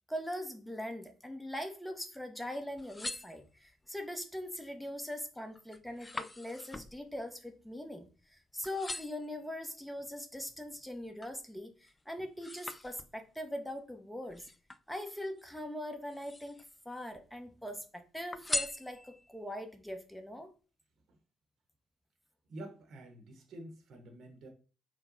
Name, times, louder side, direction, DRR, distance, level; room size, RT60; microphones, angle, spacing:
voice 1, 0.1-14.5 14.9-20.5, left 1 dB, 5° left, 5 dB, 1.0 m, -41 dB
sound 1, 2.6-3.9 4.5-4.9 5.2-8.3 8.6-9.3 9.9-11.4 11.8-13.4 14.3-15.4 16.0-16.8 17.1-17.8 18.3-19.4 19.9-20.0, left 2 dB, 20° left, 0.4 m, -42 dB
voice 2, 22.5-24.5, right 1 dB, 55° right, 4 dB, 0.9 m, -48 dB
4.4 x 2.3 x 3.9 m, 0.36 s
hypercardioid pair, 45°, 0 cm